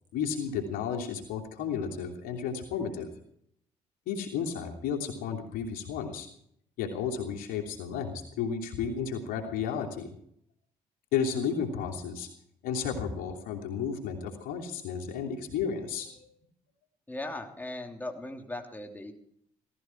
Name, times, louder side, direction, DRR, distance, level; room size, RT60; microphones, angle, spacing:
voice 1, 0.1-3.1 4.1-6.3 6.8-10.1 11.1-12.3 12.6-16.3, left 7 dB, 80° left, 2 dB, 3.0 m, -33 dB
voice 2, 17.1-19.1, left 2 dB, 10° left, 3 dB, 3.2 m, -38 dB
17.0 x 15.0 x 4.6 m, 0.68 s
supercardioid pair, 65°, 15 cm